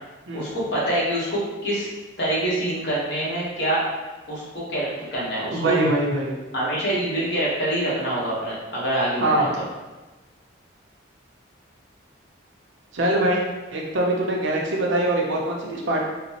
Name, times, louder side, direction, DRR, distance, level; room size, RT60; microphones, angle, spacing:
voice 1, 0.3-1.9 2.2-3.8 4.3-5.8 6.5-9.6, right 1 dB, 60° left, -7 dB, 1.1 m, -25 dB
voice 2, 5.5-6.3 9.2-9.6 12.9-13.4 13.7-16.0, right 1 dB, 70° right, -2 dB, 0.6 m, -23 dB
4.0 x 2.1 x 2.8 m, 1.2 s
head